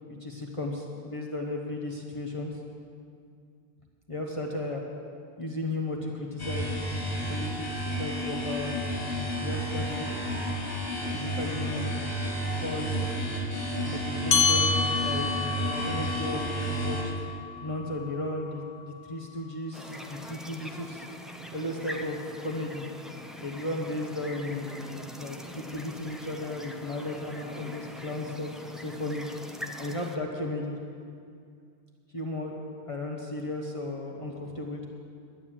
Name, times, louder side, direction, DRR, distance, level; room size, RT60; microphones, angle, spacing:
voice 1, 0.1-2.6 4.1-4.8 5.4-8.7 9.4-10.1 11.1-11.9 12.6-13.1 13.9-17.1 17.6-21.1 21.5-22.9 23.4-29.2 29.8-30.8 32.1-34.8, left 2 dB, 30° left, -1 dB, 1.2 m, -35 dB
sound 1, 6.4-17.0, equal, 50° left, 3.0 m, -31 dB
sound 2, 14.3-19.1, left 5 dB, 70° left, 1.1 m, -29 dB
sound 3, 19.7-30.2, equal, ahead, 0.5 m, -43 dB
11.5 x 9.5 x 7.4 m, 2.3 s
omnidirectional pair, 1.1 m